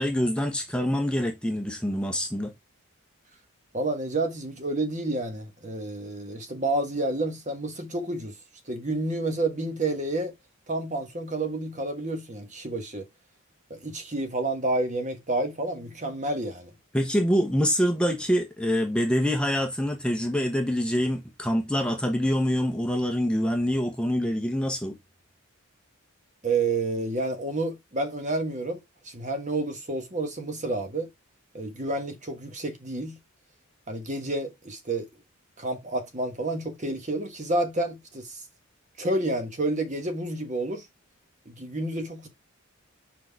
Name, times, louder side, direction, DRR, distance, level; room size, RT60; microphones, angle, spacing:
voice 1, 0.0-2.5 16.9-25.0, equal, 5° left, 1.0 m, -25 dB
voice 2, 3.7-8.3 8.7-10.3 10.7-13.0 13.7-16.7 26.4-28.8 29.0-31.1 31.5-33.2 33.9-35.1 35.6-38.4 39.0-40.8 41.5-42.3, right 2 dB, 35° right, 1.5 m, -29 dB
5.7 x 4.6 x 4.6 m
head